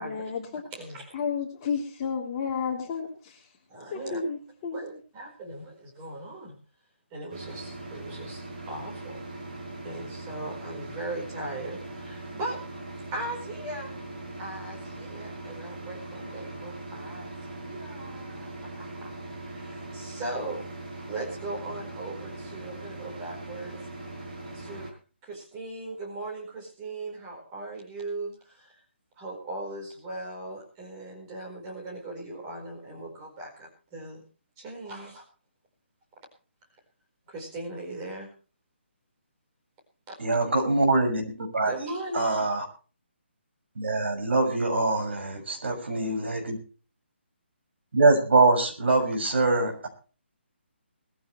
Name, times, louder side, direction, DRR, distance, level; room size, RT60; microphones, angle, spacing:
voice 1, 0.0-0.6 1.1-3.4 3.9-4.9, left 6 dB, 20° left, -1 dB, 3.5 m, -32 dB
voice 2, 0.7-1.2 3.7-4.2 4.7-6.6 7.1-8.4 8.7-9.6 9.8-12.6 13.1-13.9 14.4-17.3 17.6-19.1 19.4-20.7 21.1-23.8 24.5-24.9 25.2-28.8 29.2-34.2 34.6-35.2 37.3-38.3 41.6-42.5, right 2 dB, 15° right, 0 dB, 4.6 m, -38 dB
sound 1, 7.3-24.9, right 2 dB, 40° right, 5.4 m, -40 dB
voice 3, 40.2-42.6 43.7-46.6 47.9-49.9, right 3 dB, 65° right, 5 dB, 6.5 m, -24 dB
20.5 x 14.5 x 3.2 m, 0.37 s
hypercardioid pair, 175°, 7 cm